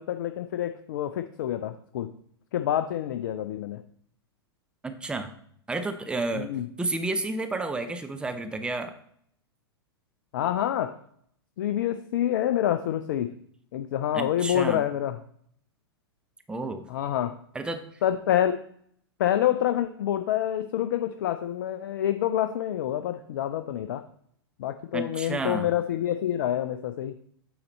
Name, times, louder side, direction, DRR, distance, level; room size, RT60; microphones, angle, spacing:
voice 1, 0.0-2.1 2.5-3.8 6.4-6.7 10.3-10.9 11.6-13.3 13.7-15.2 16.9-17.3 18.0-18.6 19.2-24.0 24.6-27.1, left 11 dB, 55° left, 9 dB, 0.4 m, -27 dB
voice 2, 4.8-5.3 5.7-6.5 6.8-9.0 14.1-14.8 16.5-16.9 17.5-17.8 24.9-25.7, right 2 dB, 5° right, 7 dB, 0.6 m, -31 dB
8.7 x 4.0 x 4.1 m, 0.64 s
figure-of-eight pair, 100°, 13 cm